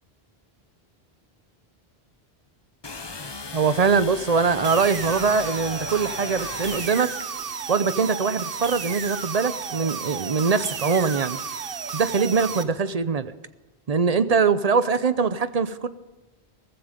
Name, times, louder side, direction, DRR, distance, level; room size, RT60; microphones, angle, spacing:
sound 1, 2.8-7.2, left 4 dB, 30° left, 0.7 m, -37 dB
voice 1, 3.5-7.1 7.7-11.4 11.9-13.3 13.9-15.9, right 5 dB, 40° right, 13 dB, 0.7 m, -22 dB
sound 2, 4.6-12.6, right 6 dB, 60° right, 1.1 m, -33 dB
15.0 x 14.5 x 5.1 m, 1.2 s
omnidirectional pair, 1.1 m